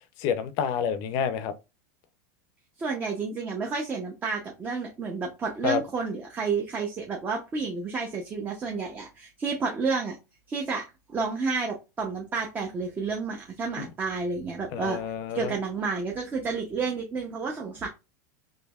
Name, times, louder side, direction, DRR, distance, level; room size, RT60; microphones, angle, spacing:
voice 1, 0.2-1.5 5.6-5.8 13.8-13.9 14.7-15.5, left 7 dB, 45° left, 0.6 m, -28 dB
voice 2, 2.8-10.1 10.5-17.9, right 4 dB, 20° right, 0.7 m, -30 dB
4.5 x 3.1 x 2.3 m
supercardioid pair, 150°, 9 cm